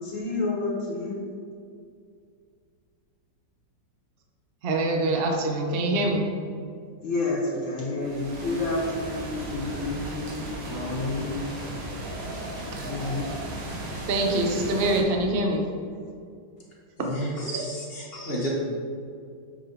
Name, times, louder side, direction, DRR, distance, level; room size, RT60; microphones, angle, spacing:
voice 1, 0.0-1.3 7.0-11.5 12.6-13.4, left 2 dB, 70° left, 2.1 m, -30 dB
voice 2, 4.6-6.3 14.1-15.6 17.0-17.1 17.4-17.7, right 2 dB, 50° right, 0.7 m, -24 dB
sound 1, 8.0-15.0, right 1 dB, 80° right, 2.3 m, -36 dB
voice 3, 17.0-18.5, equal, 30° left, 1.4 m, -32 dB
7.3 x 6.5 x 4.0 m
omnidirectional pair, 2.3 m